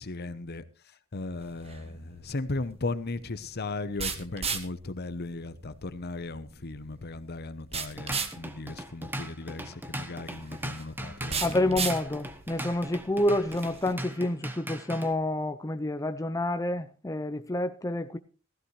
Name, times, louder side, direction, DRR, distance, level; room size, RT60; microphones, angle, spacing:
voice 1, 0.0-11.9, left 2 dB, 50° left, 0.9 m, -37 dB
sound 1, 1.3-13.9, right 5 dB, 30° right, 1.4 m, -38 dB
Drum kit / Drum, 7.7-15.1, right 1 dB, 10° right, 1.2 m, -39 dB
voice 2, 11.4-18.2, left 1 dB, 15° left, 0.6 m, -28 dB
15.5 x 14.0 x 3.2 m
head